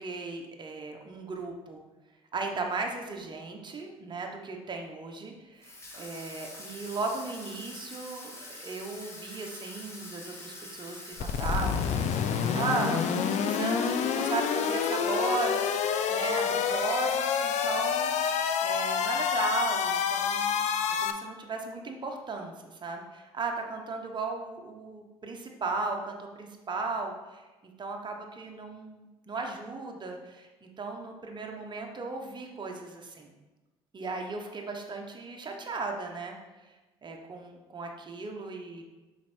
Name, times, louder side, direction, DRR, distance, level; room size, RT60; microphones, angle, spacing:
voice 1, 0.0-1.8 2.3-12.1 12.5-18.1 18.6-20.7 21.0-27.5 27.8-33.3 33.9-36.7 37.0-38.8, right 3 dB, 35° right, 2 dB, 1.2 m, -36 dB
Water tap faucet / Sink (filling or washing), 5.6-18.8, left 1 dB, 20° left, 1.8 m, -45 dB
sound 1, 11.2-21.1, left 7 dB, 65° left, 0.5 m, -28 dB
5.5 x 4.4 x 4.5 m, 1.2 s
supercardioid pair, 70°, 13 cm